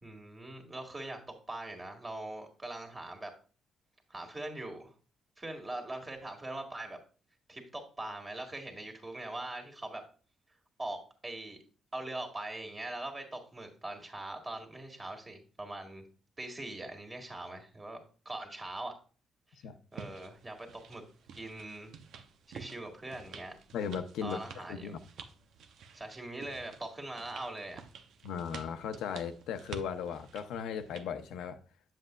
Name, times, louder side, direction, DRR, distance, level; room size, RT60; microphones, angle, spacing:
voice 1, 0.0-3.3 4.1-4.9 5.4-7.0 7.5-10.0 10.8-11.6 11.9-16.0 16.4-18.0 18.3-18.9 19.5-19.6 19.9-21.0 21.3-21.9 22.5-23.6 24.2-25.0 25.9-27.8, right 2 dB, 20° right, 1.8 m, -42 dB
sound 1, 19.9-31.1, right 6 dB, 75° right, 0.6 m, -51 dB
voice 2, 23.7-25.0 28.2-31.6, left 7 dB, 85° left, 0.6 m, -37 dB
7.6 x 7.5 x 2.2 m
cardioid pair, 90°, 0 cm